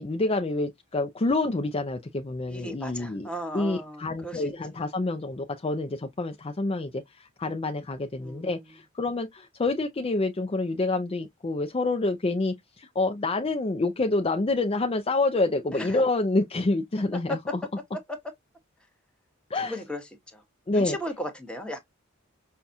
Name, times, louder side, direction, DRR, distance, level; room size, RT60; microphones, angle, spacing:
voice 1, 0.0-3.3 3.5-17.4 19.5-19.8 20.7-21.0, left 2 dB, 30° left, 0.5 m, -27 dB
voice 2, 2.5-4.4 8.2-8.7 15.8-16.0 17.3-17.4 18.1-18.2 19.6-20.0 20.3-20.4 20.7-21.8, equal, 5° left, 1.0 m, -35 dB
5.6 x 2.3 x 2.6 m
head